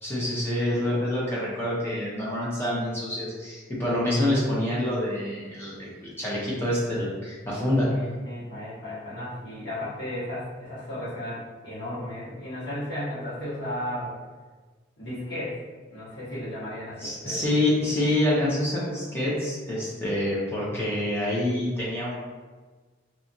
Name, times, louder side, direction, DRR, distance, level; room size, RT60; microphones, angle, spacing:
voice 1, 0.0-7.9 17.0-22.2, left 1 dB, 15° left, -7 dB, 0.7 m, -27 dB
voice 2, 7.9-14.1 15.0-15.6 15.9-17.5, left 1 dB, 75° left, -10 dB, 1.5 m, -34 dB
2.8 x 2.3 x 2.6 m, 1.4 s
head